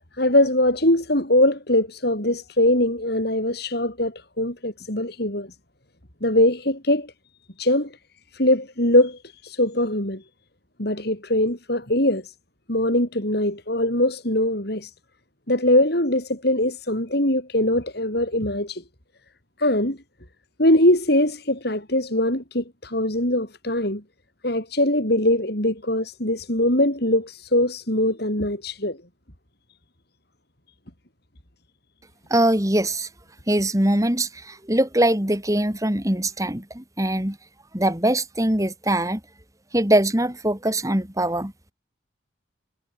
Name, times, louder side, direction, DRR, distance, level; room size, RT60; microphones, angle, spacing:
voice 1, 0.2-5.5 6.2-7.1 7.6-7.9 8.3-10.2 10.8-12.3 12.7-14.9 15.5-18.8 19.6-20.0 20.6-24.0 24.4-29.0, left 1 dB, 55° left, 6.2 m, -22 dB
voice 2, 32.3-33.1 33.5-37.4 37.7-39.2 39.7-41.5, right 1 dB, 15° right, 2.2 m, -22 dB
head